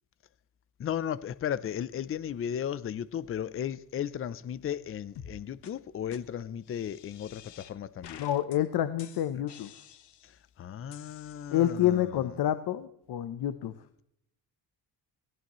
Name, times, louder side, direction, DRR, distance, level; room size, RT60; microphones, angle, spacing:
voice 1, 0.8-8.2 10.2-10.3 10.6-12.2, left 9 dB, 35° left, 0.5 m, -35 dB
sound 1, 5.2-5.4 5.6-5.7 6.1-6.2 6.6-7.7 8.0-8.6 9.0-10.4 10.9-11.9, left 9 dB, 85° left, 1.4 m, -50 dB
voice 2, 8.2-9.7 11.5-13.7, left 12 dB, 65° left, 0.9 m, -28 dB
20.0 x 17.0 x 3.1 m
cardioid pair, 170°, 40 cm